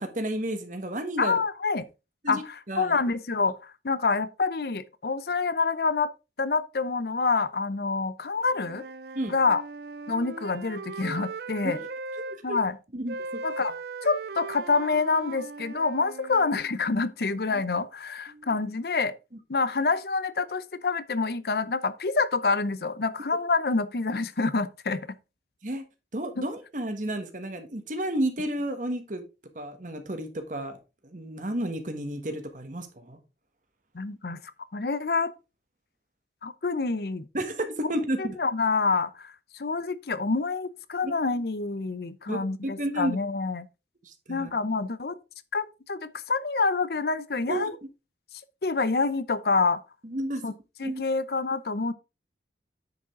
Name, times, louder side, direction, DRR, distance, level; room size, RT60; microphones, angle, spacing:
voice 1, 0.0-1.4 2.2-2.4 2.7-3.0 9.1-9.3 11.6-11.8 12.5-12.6 12.9-13.4 17.5-17.6 18.3-18.6 25.6-25.8 26.1-29.2 29.5-33.2 37.3-38.4 41.0-41.1 42.3-43.2 44.0-44.5 47.5-47.7 50.0-50.4 50.8-51.0, right 1 dB, 45° right, 1.4 m, -32 dB
voice 2, 1.2-1.8 2.3-6.1 6.4-8.8 9.3-9.6 10.1-11.8 12.4-12.8 13.4-13.8 14.0-19.1 19.5-25.1 26.4-26.5 33.9-34.4 34.7-35.3 36.4-37.2 38.2-43.7 44.3-45.2 45.5-47.8 48.6-49.8 50.4-50.5 50.8-51.9, left 4 dB, 60° left, 0.6 m, -27 dB
Wind instrument woodwind instrument, 8.5-12.4 13.1-16.6, right 3 dB, 65° right, 0.5 m, -39 dB
9.6 x 5.2 x 3.7 m
head